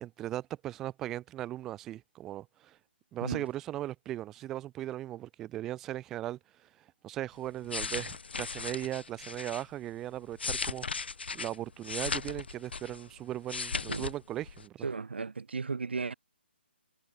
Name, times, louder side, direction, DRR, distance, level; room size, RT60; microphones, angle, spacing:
voice 1, 0.0-2.8 3.1-11.1 11.3-14.8, right 13 dB, 5° right, 0.3 m, -38 dB
sound 1, 7.5-9.6 10.2-13.1 13.4-14.1 14.4-14.6, left 4 dB, 65° left, 5.8 m, -37 dB
voice 2, 14.8-16.1, right 4 dB, 70° right, 3.1 m, -35 dB
hypercardioid pair, 175°, 6 cm